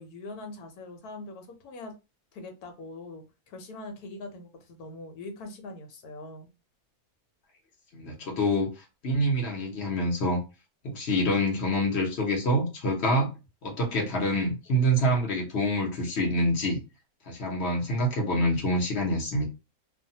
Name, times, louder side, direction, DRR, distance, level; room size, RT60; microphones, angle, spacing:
voice 1, 0.0-1.9 2.3-6.5, left 2 dB, 85° left, 5 dB, 1.2 m, -42 dB
voice 2, 7.9-8.7 9.0-10.4 10.8-13.3 13.6-16.8 17.3-19.5, equal, 50° left, 0 dB, 1.0 m, -26 dB
2.6 x 2.2 x 2.7 m, 0.28 s
omnidirectional pair, 1.6 m